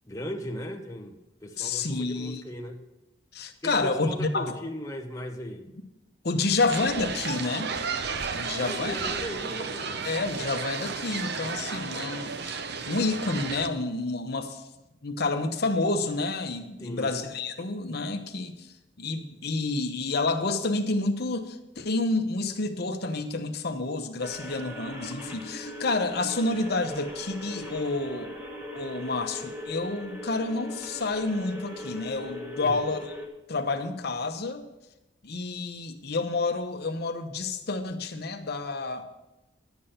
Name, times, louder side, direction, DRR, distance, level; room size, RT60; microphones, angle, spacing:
voice 1, 0.0-2.8 3.6-5.7 8.5-10.1 16.8-17.2 32.6-32.9, equal, 15° left, 0.8 m, -38 dB
voice 2, 1.6-2.4 3.3-4.6 6.2-7.7 8.3-8.9 10.0-12.6 12.9-14.6 15.0-18.5 19.0-28.3 28.7-33.2 33.5-34.6 35.2-39.1, left 3 dB, 55° left, 0.9 m, -29 dB
sound 1, 6.7-13.7, right 5 dB, 60° right, 0.7 m, -33 dB
sound 2, 24.2-33.3, left 1 dB, 15° right, 2.2 m, -39 dB
11.5 x 8.3 x 5.7 m
head